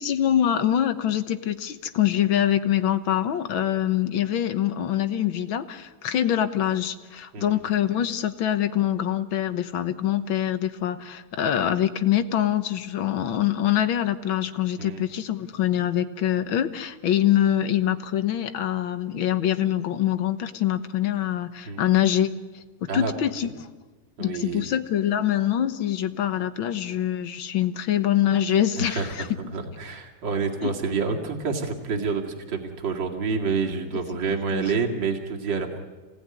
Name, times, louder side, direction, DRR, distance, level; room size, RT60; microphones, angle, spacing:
voice 1, 0.0-22.6 22.9-23.5 24.2-29.3 30.6-30.7 33.9-34.0 34.5-34.8, left 11 dB, 70° left, 10 dB, 1.8 m, -24 dB
voice 2, 24.2-24.7 28.8-29.1 29.5-35.8, right 5 dB, 60° right, 1 dB, 2.9 m, -28 dB
28.0 x 18.5 x 9.7 m, 1.4 s
omnidirectional pair, 2.3 m